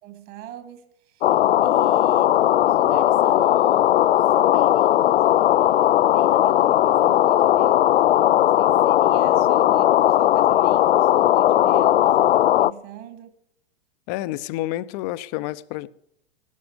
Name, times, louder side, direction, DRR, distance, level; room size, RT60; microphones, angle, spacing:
voice 1, 0.0-7.9 8.3-13.4, right 10 dB, 40° right, 2.4 m, -42 dB
sound 1, 1.2-12.7, left 12 dB, 75° left, 0.5 m, -18 dB
voice 2, 14.1-15.9, left 16 dB, 40° left, 0.7 m, -29 dB
17.5 x 13.0 x 5.2 m
hypercardioid pair, 105°, 32 cm